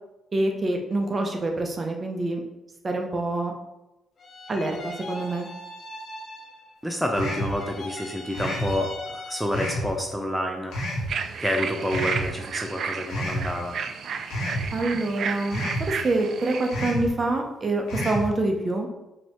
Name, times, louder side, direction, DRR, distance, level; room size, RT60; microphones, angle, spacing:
voice 1, 0.3-2.4 2.8-3.5 4.5-5.5 14.7-18.9, right 2 dB, 30° right, 3 dB, 0.8 m, -26 dB
sound 1, 4.2-6.8 7.1-9.8, left 1 dB, 50° left, 0.7 m, -41 dB
voice 2, 6.8-10.8 11.4-13.8, left 1 dB, ahead, 2 dB, 0.5 m, -28 dB
sound 2, 7.1-7.6 8.3-8.7 9.5-9.9 10.7-11.1 11.9-12.3 13.1-13.5 14.3-14.7 15.5-15.9 16.7-17.1 17.9-18.3, equal, 90° left, 1.3 m, -29 dB
sound 3, 11.1-16.8, right 6 dB, 65° right, 0.4 m, -32 dB
5.0 x 2.9 x 3.5 m, 0.98 s
cardioid pair, 90°, 0 cm